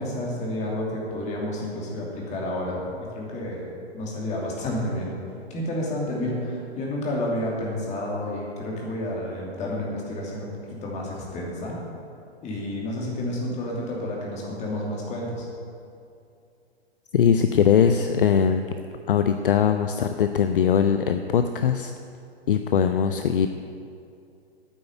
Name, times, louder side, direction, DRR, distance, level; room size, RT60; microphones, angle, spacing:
voice 1, 0.0-5.1 5.5-11.8 12.4-15.5, left 1 dB, 20° left, -3 dB, 2.7 m, -30 dB
voice 2, 17.1-18.6 19.1-21.9 22.5-23.5, left 7 dB, 55° left, 8 dB, 0.6 m, -21 dB
9.3 x 8.9 x 8.1 m, 2.5 s
figure-of-eight pair, 115°, 33 cm